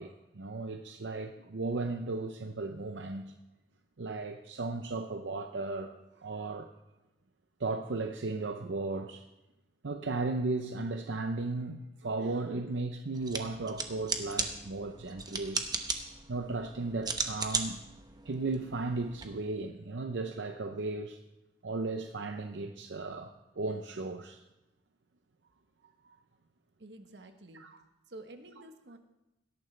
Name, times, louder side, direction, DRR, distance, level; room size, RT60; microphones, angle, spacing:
voice 1, 0.0-3.3 4.0-6.7 7.6-9.3 9.8-15.6 16.3-17.8 18.3-21.2 21.6-24.4 26.0-26.2 27.5-27.8, right 3 dB, 90° right, 0.6 m, -35 dB
sound 1, 13.1-19.2, right 4 dB, 25° right, 1.0 m, -37 dB
voice 2, 26.8-27.6 28.1-29.0, right 2 dB, 70° right, 1.2 m, -49 dB
17.5 x 12.5 x 3.3 m
head